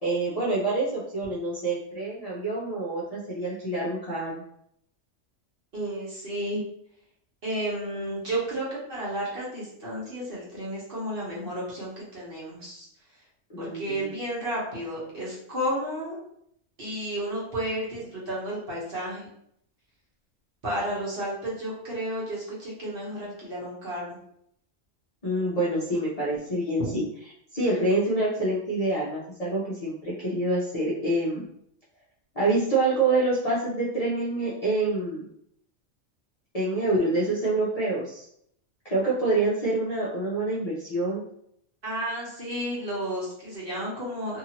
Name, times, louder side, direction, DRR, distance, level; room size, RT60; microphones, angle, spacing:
voice 1, 0.0-4.3 13.5-14.1 25.2-27.0 27.5-31.4 32.4-35.3 36.5-38.3 38.8-41.2, right 2 dB, 40° left, -7 dB, 0.7 m, -26 dB
voice 2, 5.7-6.6 7.4-12.9 13.6-16.2 16.8-19.3 20.6-24.2 26.8-26.9 41.8-44.4, right 1 dB, 50° right, -6 dB, 1.2 m, -32 dB
2.7 x 2.7 x 2.9 m, 0.70 s
omnidirectional pair, 1.3 m